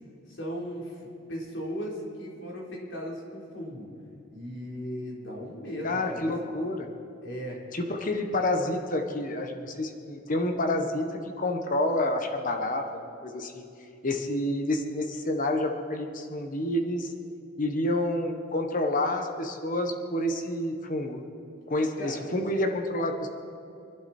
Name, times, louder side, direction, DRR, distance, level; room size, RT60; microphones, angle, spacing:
voice 1, 0.3-3.9 4.3-6.3 7.2-7.6 22.0-22.3, equal, 65° left, -3 dB, 3.8 m, -37 dB
voice 2, 5.8-6.9 7.7-13.6 14.0-17.1 17.6-21.2 21.7-23.3, left 1 dB, 40° left, 4 dB, 1.2 m, -29 dB
24.0 x 11.5 x 4.4 m, 2.6 s
head